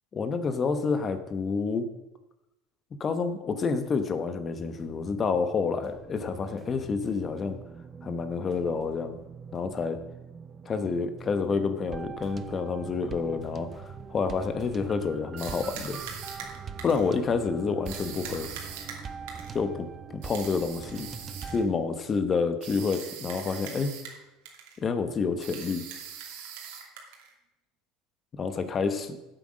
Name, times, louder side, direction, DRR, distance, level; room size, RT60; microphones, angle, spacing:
voice 1, 0.1-1.9 3.0-7.6 8.0-9.2 9.5-10.0 10.6-16.0 16.8-18.5 19.5-19.9 20.2-21.1 21.5-23.9 24.8-25.8 28.3-29.2, left 5 dB, 25° left, 10 dB, 1.0 m, -28 dB
sound 1, 4.6-21.7, right 6 dB, 25° right, 0.4 m, -43 dB
sound 2, 15.4-17.1 17.9-19.6 20.2-21.6 22.6-24.2 24.5-24.8 25.4-27.3, right 7 dB, 80° right, 2.5 m, -41 dB
8.4 x 7.9 x 6.3 m, 0.96 s
supercardioid pair, 140°, 0 cm